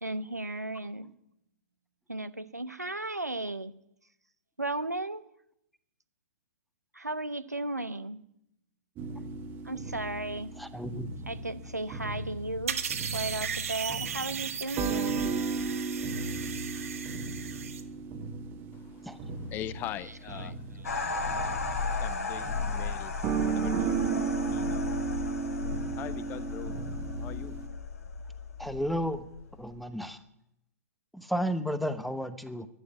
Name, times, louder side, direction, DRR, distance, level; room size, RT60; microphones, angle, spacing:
voice 1, 0.0-1.1 2.1-3.7 4.6-5.2 6.9-8.2 9.6-10.5 11.3-12.8 13.1-15.3 20.0-20.9, right 2 dB, 85° right, 12 dB, 1.0 m, -35 dB
sound 1, 9.0-27.7, right 5 dB, 25° right, 1.4 m, -35 dB
voice 2, 10.6-11.1 19.0-19.2 28.6-29.3 29.6-30.2 31.1-32.7, equal, ahead, 12 dB, 0.9 m, -32 dB
sound 2, 12.7-17.8, right 8 dB, 60° right, 1.7 m, -36 dB
voice 3, 18.7-20.6 22.0-23.1 23.5-24.1 24.5-24.9 26.0-26.7 27.2-27.6, left 12 dB, 25° left, 18 dB, 0.6 m, -42 dB
sound 3, 20.8-29.8, left 4 dB, 65° left, 2.8 m, -35 dB
11.5 x 11.5 x 9.7 m, 0.79 s
figure-of-eight pair, 115°, 9 cm